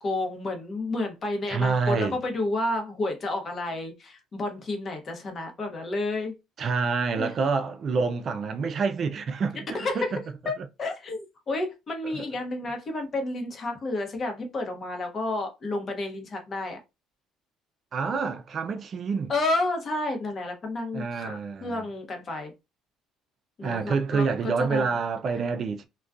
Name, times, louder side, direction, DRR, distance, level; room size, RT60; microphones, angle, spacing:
voice 1, 0.0-6.3 7.2-7.3 9.7-10.1 10.4-16.8 19.3-22.5 23.6-24.9, left 2 dB, 35° left, 0.8 m, -31 dB
voice 2, 1.5-2.2 6.6-9.6 9.9-10.0 12.1-12.2 17.9-19.3 20.9-21.8 23.6-25.8, right 4 dB, 45° right, 0.3 m, -27 dB
2.3 x 2.2 x 2.5 m
cardioid pair, 115°, 0 cm